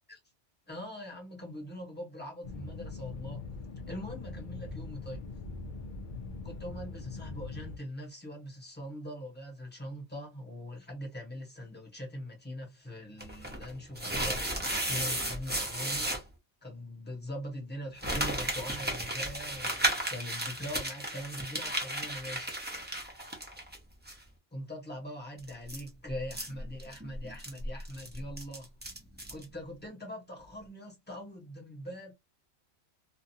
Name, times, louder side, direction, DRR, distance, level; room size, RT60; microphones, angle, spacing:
voice 1, 0.7-3.4 3.9-5.2 6.4-16.2 16.6-22.5 24.5-28.7 29.3-32.1, equal, 10° left, 0.9 m, -42 dB
sound 1, 2.4-7.8, left 3 dB, 55° left, 0.6 m, -42 dB
sound 2, 13.2-16.2 18.0-23.8 24.1-24.2 25.4-29.4, right 1 dB, 10° right, 0.5 m, -34 dB
2.5 x 2.3 x 2.7 m
omnidirectional pair, 1.3 m